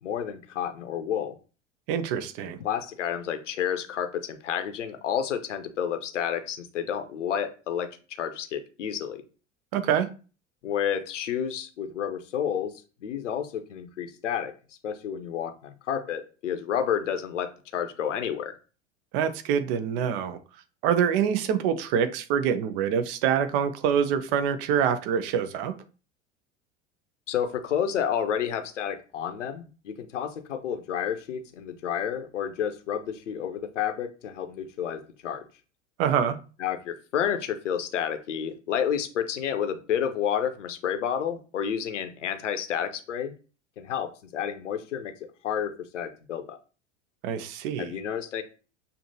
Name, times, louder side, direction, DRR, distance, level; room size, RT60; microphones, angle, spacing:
voice 1, 0.0-1.4 2.4-7.9 8.2-9.2 10.6-12.7 13.0-14.5 14.8-18.6 27.3-35.4 36.6-43.3 43.8-45.1 45.4-46.6 47.8-48.4, left 8 dB, 75° left, 0.7 m, -30 dB
voice 2, 1.9-2.6 9.7-10.1 19.1-20.4 20.8-25.7 36.0-36.4 47.2-47.9, right 8 dB, 50° right, 0.7 m, -25 dB
6.6 x 2.8 x 2.7 m
figure-of-eight pair, 80°, 37 cm